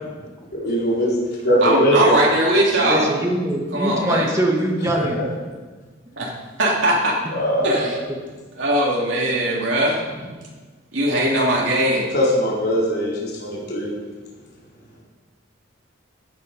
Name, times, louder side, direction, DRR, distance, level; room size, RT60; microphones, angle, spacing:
voice 1, 0.5-1.2 1.4-2.2 4.8-5.1 7.3-8.0 12.1-13.9, equal, 55° left, -6 dB, 4.2 m, -20 dB
voice 2, 1.6-3.1 3.7-4.3 6.2-6.3 6.6-7.2 7.6-8.0 8.6-10.0 10.9-12.1, right 1 dB, 70° right, -4 dB, 2.5 m, -20 dB
voice 3, 2.8-5.2 7.2-7.3, right 1 dB, 15° right, 0 dB, 2.0 m, -22 dB
16.0 x 9.6 x 5.3 m, 1.3 s
head